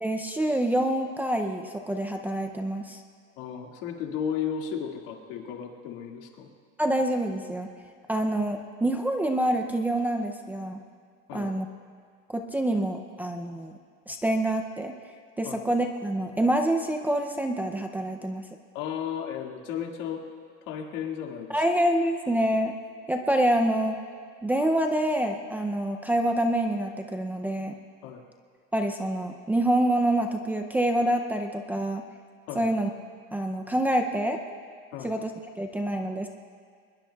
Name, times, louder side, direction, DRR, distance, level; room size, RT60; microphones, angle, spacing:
voice 1, 0.0-3.0 6.8-7.7 8.1-10.8 11.3-11.7 12.3-13.7 14.1-14.9 15.4-18.4 21.5-22.7 23.1-24.0 24.4-27.7 28.7-32.0 32.5-32.9 33.3-34.4 35.0-35.3 35.6-36.3, right 1 dB, 5° right, 4 dB, 0.4 m, -26 dB
voice 2, 3.4-6.5 11.3-11.5 15.4-15.6 18.7-20.3 20.7-21.6 28.0-28.2 32.5-32.7 34.9-35.1, left 8 dB, 75° left, 2 dB, 2.0 m, -34 dB
23.5 x 21.0 x 2.3 m, 2.1 s
cardioid pair, 180°, 29 cm